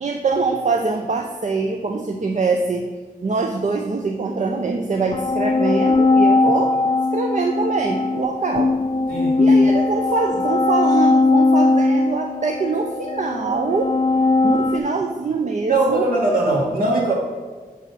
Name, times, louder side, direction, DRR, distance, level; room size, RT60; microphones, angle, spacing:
voice 1, 0.0-2.9 3.2-6.7 7.1-8.7 9.4-13.9 14.4-16.1, right 4 dB, 50° right, 3 dB, 0.5 m, -23 dB
sound 1, 4.9-14.8, left 3 dB, 35° left, 0.4 m, -19 dB
voice 2, 9.1-9.5 15.7-17.1, right 2 dB, 70° right, -5 dB, 2.5 m, -20 dB
6.9 x 4.2 x 6.2 m, 1.4 s
wide cardioid pair, 80°, 16 cm